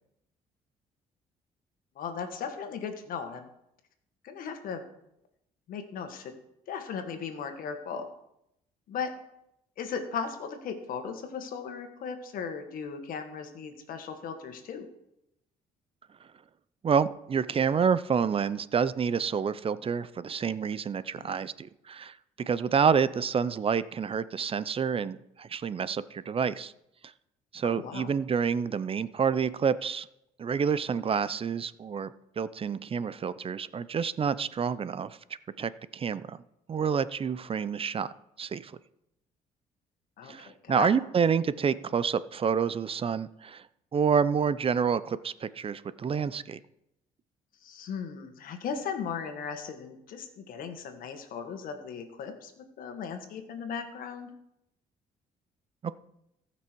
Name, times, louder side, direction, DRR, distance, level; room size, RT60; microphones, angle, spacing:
voice 1, 1.9-3.5 4.2-4.8 5.7-6.3 6.7-8.1 8.9-9.1 9.8-14.9 21.1-21.3 27.6-28.1 31.0-31.1 40.2-40.9 47.6-54.3, left 6 dB, 70° left, 7 dB, 1.7 m, -37 dB
voice 2, 16.8-22.2 22.5-26.7 27.5-30.1 30.4-32.1 32.4-35.2 35.6-36.4 36.7-38.1 38.4-38.7 40.2-43.7 43.9-46.6, right 6 dB, 40° right, 16 dB, 0.6 m, -28 dB
18.0 x 6.0 x 4.6 m, 0.82 s
supercardioid pair, 75°, 15 cm